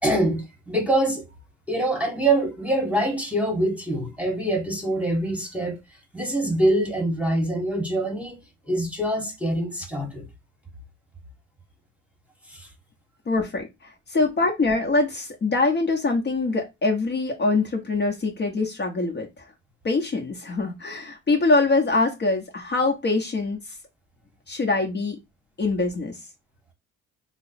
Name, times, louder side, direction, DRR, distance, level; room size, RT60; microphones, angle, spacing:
voice 1, 0.0-1.3 1.7-5.8 6.1-10.3 12.4-12.7, right 1 dB, 5° right, 1.1 m, -24 dB
voice 2, 13.3-19.5 19.8-23.8 24.5-25.2 25.6-26.2, left 3 dB, 35° left, 0.9 m, -24 dB
3.3 x 2.0 x 4.1 m
cardioid pair, 90°, 30 cm